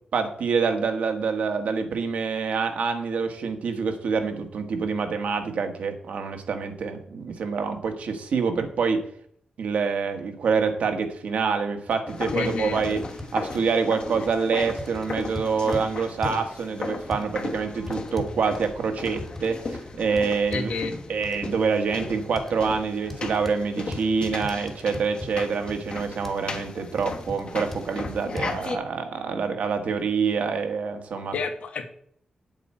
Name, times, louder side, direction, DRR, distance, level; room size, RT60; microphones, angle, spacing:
voice 1, 0.1-9.0 9.6-13.0 13.3-20.7 21.1-31.3, right 5 dB, 80° right, 5 dB, 1.4 m, -26 dB
sound 1, 11.9-12.0 12.3-12.4 12.8-13.7 14.3-14.4 14.8-15.9 16.2-16.5 17.1-17.2 17.9-19.5 19.7-19.8 20.2-20.7 21.2-21.4 22.4-22.5 23.1-23.6 23.9-25.3 25.7-25.8 26.2-26.4 27.0-27.4 27.7-27.8 28.4-28.5, left 1 dB, 5° left, 1.2 m, -37 dB
sound 2, 12.1-28.8, left 3 dB, 45° left, 1.2 m, -36 dB
voice 2, 12.3-12.8 20.5-20.9 31.3-31.9, left 4 dB, 85° left, 6 dB, 1.3 m, -29 dB
8.6 x 8.1 x 4.3 m, 0.64 s
wide cardioid pair, 135°, 2 cm